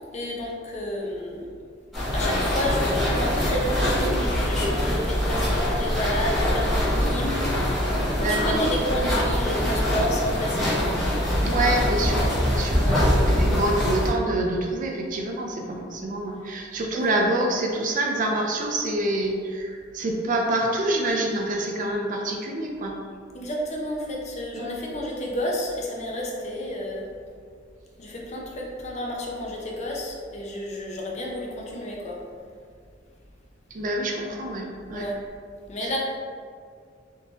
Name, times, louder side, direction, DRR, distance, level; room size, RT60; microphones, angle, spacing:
voice 1, 0.1-1.5 2.1-7.7 8.2-10.8 12.7-13.0 16.9-17.1 23.3-27.0 28.0-32.2 34.9-35.2 35.7-36.0, equal, 35° left, -2 dB, 0.5 m, -30 dB
sound 1, 1.9-14.1, equal, ahead, 1.0 m, -23 dB
voice 2, 8.2-8.6 11.4-12.8 13.4-22.9 24.6-24.8 33.7-35.0 35.8-36.0, right 1 dB, 45° right, 1 dB, 0.4 m, -26 dB
3.6 x 2.7 x 2.8 m, 2.1 s
head